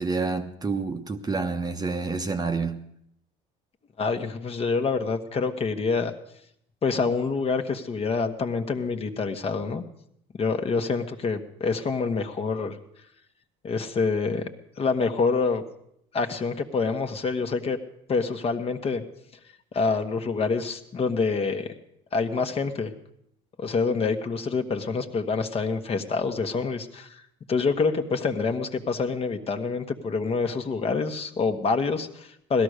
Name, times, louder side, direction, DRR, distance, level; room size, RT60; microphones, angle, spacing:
voice 1, 0.0-2.8, right 4 dB, 20° right, 1.0 m, -28 dB
voice 2, 4.0-6.1 6.8-9.8 10.4-12.8 13.6-14.4 14.8-15.6 16.1-17.8 18.1-19.0 19.7-21.7 22.1-22.9 23.6-27.2 27.5-32.6, left 4 dB, 35° left, 1.3 m, -26 dB
17.5 x 12.5 x 6.6 m
cardioid pair, 110°, 18 cm